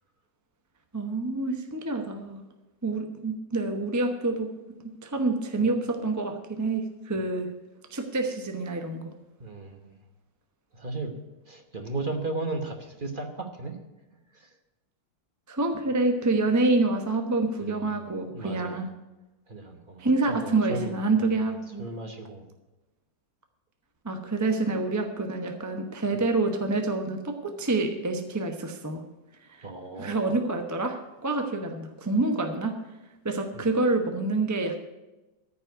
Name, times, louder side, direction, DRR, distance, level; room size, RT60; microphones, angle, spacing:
voice 1, 0.9-2.4 2.8-4.5 5.0-7.5 7.9-9.1 15.5-18.9 20.0-21.9 24.0-29.0 29.5-29.7 30.0-32.7 33.2-34.8, right 3 dB, 15° right, 4 dB, 0.6 m, -27 dB
voice 2, 9.4-9.9 10.7-11.1 11.4-13.8 14.3-14.5 17.6-18.8 19.5-21.4 21.8-22.5 24.6-24.7 26.1-26.2 29.6-30.3 33.5-33.7, right 2 dB, 35° right, 5 dB, 1.1 m, -36 dB
14.0 x 5.4 x 9.2 m, 1.1 s
omnidirectional pair, 2.0 m